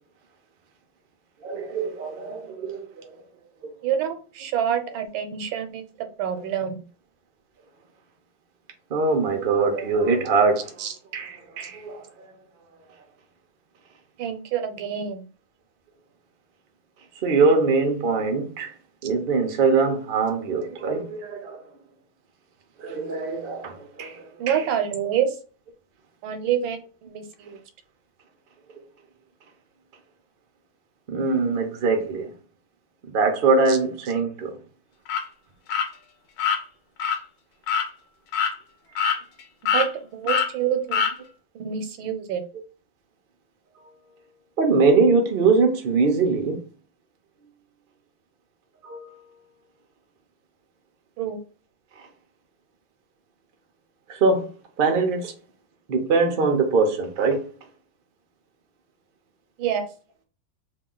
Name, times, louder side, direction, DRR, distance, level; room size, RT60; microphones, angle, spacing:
voice 1, 1.4-2.8 8.9-10.7 11.1-12.0 17.2-18.7 19.0-21.6 22.8-24.6 31.1-32.3 33.1-34.5 44.6-46.6 48.8-49.1 54.1-54.5 54.8-55.3 55.9-57.5, right 4 dB, 70° right, 0.5 m, -22 dB
voice 2, 3.8-5.8 6.2-6.7 10.8-10.9 14.2-15.3 19.0-19.1 24.4-25.4 26.2-27.6 33.7-33.8 39.7-39.9 40.1-41.0 41.5-42.4 51.2-51.4 59.6-59.9, right 9 dB, 90° right, 1.4 m, -27 dB
sound 1, 35.1-35.2 35.7-35.9 36.4-36.6 37.0-37.2 37.7-37.9 38.3-38.5 39.0-39.4 39.7-39.9 40.3-40.5 40.9-41.1, left 6 dB, 90° left, 1.5 m, -23 dB
3.5 x 2.3 x 3.8 m
omnidirectional pair, 2.1 m